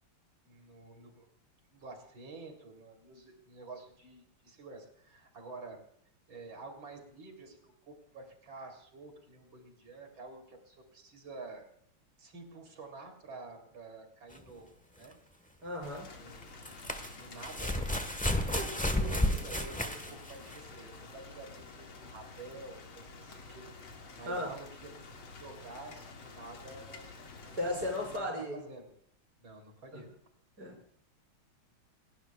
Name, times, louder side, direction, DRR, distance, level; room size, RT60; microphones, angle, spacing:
voice 1, 0.4-1.3 1.7-5.8 6.3-7.6 7.8-11.7 12.2-14.7 15.0-15.2 16.1-16.5 17.1-17.9 18.4-24.9 25.2-27.0 27.3-28.9 29.4-30.1, right 3 dB, 70° right, 3 dB, 4.1 m, -49 dB
sound 1, 14.3-14.4 16.4-20.7 21.7-21.8, left 1 dB, 5° left, 0.7 m, -32 dB
voice 2, 15.6-16.1 18.5-18.7 24.3-24.5 27.6-28.6 30.6-30.7, left 1 dB, 50° right, 0 dB, 6.0 m, -35 dB
Rain, 15.8-28.2, left 4 dB, 90° left, 2.8 m, -50 dB
29.0 x 12.0 x 2.3 m, 0.69 s
omnidirectional pair, 2.2 m